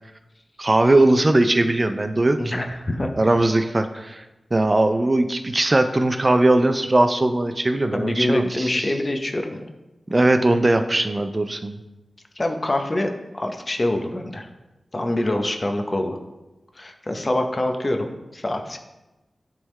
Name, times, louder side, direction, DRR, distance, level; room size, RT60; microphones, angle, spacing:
voice 1, 0.6-2.6 3.2-4.2 4.5-8.7 10.1-11.8, right 2 dB, 35° right, 8 dB, 0.4 m, -19 dB
voice 2, 2.4-3.1 7.9-9.6 12.4-14.5 14.9-16.2 16.8-18.8, left 1 dB, 40° left, 5 dB, 0.7 m, -25 dB
10.0 x 3.6 x 3.2 m, 1.0 s
cardioid pair, 55°, 0 cm